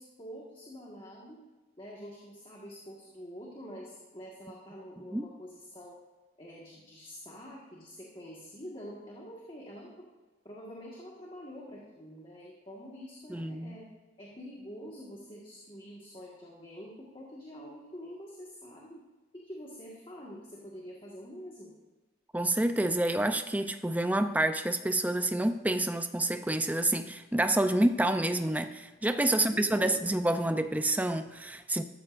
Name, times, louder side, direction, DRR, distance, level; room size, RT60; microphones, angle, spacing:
voice 1, 0.0-1.4 1.8-6.0 6.4-10.1 10.4-13.8 14.2-19.0 19.3-21.7 29.3-30.0, equal, 25° left, -4 dB, 1.6 m, -46 dB
voice 2, 13.3-13.8 22.3-31.8, right 1 dB, 10° right, 9 dB, 0.5 m, -28 dB
13.5 x 13.5 x 2.6 m, 1.3 s
head